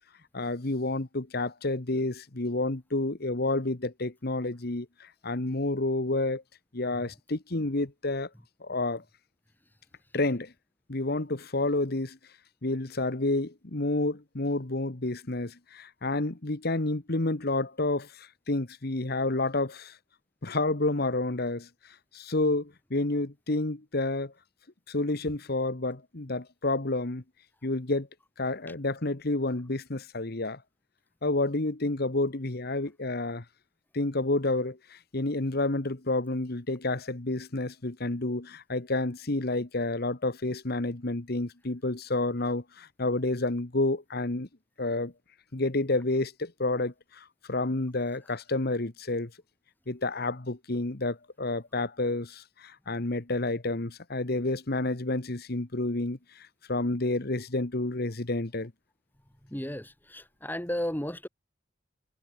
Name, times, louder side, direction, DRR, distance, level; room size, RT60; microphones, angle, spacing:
voice 1, 0.3-6.4 6.7-8.3 8.6-9.0 10.1-10.5 10.9-12.2 12.6-19.9 20.4-21.7 22.1-24.3 24.9-27.2 27.6-28.1 28.4-30.6 31.2-33.4 33.9-44.5 44.8-45.1 45.5-49.3 49.9-58.7, left 2 dB, 55° left, 1.5 m, -29 dB
voice 2, 59.4-61.3, left 1 dB, 10° left, 3.8 m, -34 dB
head